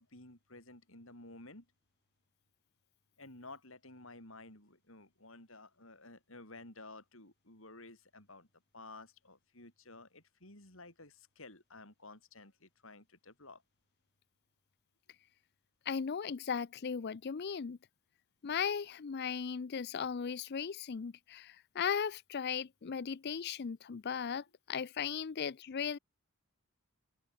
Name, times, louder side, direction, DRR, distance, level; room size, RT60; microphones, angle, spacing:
voice 1, 0.0-1.7 3.2-8.5 8.7-13.6, left 2 dB, 65° left, 7.3 m, -53 dB
voice 2, 15.9-17.8 18.4-26.0, left 7 dB, 50° left, 0.5 m, -37 dB
open air
head